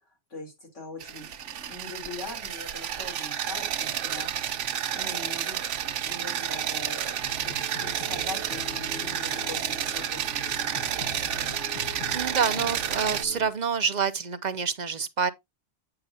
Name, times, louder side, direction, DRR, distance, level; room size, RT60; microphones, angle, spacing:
voice 1, 0.3-4.6 4.9-7.2 7.4-11.0, left 3 dB, 80° left, 3.5 m, -42 dB
sound 1, 1.0-13.2, right 9 dB, 80° right, 1.0 m, -31 dB
sound 2, 7.2-13.5, left 2 dB, 55° left, 1.5 m, -42 dB
voice 2, 11.7-15.3, right 6 dB, 50° right, 0.6 m, -28 dB
8.7 x 6.6 x 2.6 m
omnidirectional pair, 1.2 m